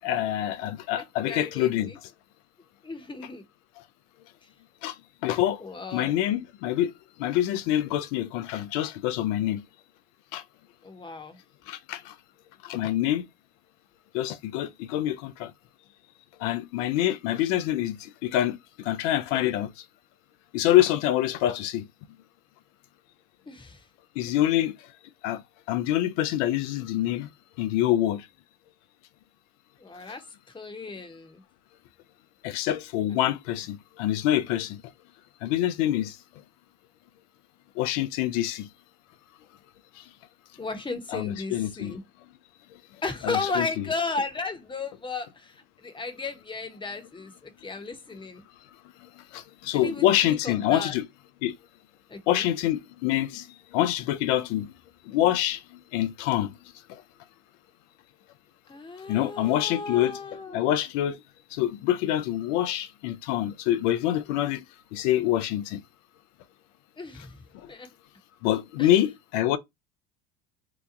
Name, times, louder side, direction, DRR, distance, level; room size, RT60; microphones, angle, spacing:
voice 1, 0.0-1.9 4.8-4.9 5.2-5.6 5.9-6.9 7.2-9.6 10.3-10.4 11.7-12.1 12.6-13.2 14.1-15.5 16.4-18.6 18.8-19.7 20.5-21.8 24.2-24.7 25.2-25.4 25.7-27.3 27.6-28.2 32.4-34.8 35.4-36.2 37.8-38.7 41.1-42.0 43.2-43.8 49.3-51.0 51.4-51.6 52.3-53.5 53.7-54.7 55.1-55.6 55.9-56.6 59.1-60.2 60.5-61.2 61.5-64.6 64.9-65.8 68.4-69.6, left 13 dB, 75° left, 0.6 m, -26 dB
voice 2, 0.9-2.0 2.8-3.5 4.4-4.5 5.6-6.1 10.8-11.4 23.5-23.9 29.8-31.4 33.1-33.3 40.6-42.0 43.0-48.4 49.7-50.9 52.1-52.5 58.7-60.7 67.0-67.9 68.8-68.9, left 3 dB, 15° left, 0.9 m, -35 dB
2.9 x 2.2 x 3.7 m
hypercardioid pair, 80°, 37 cm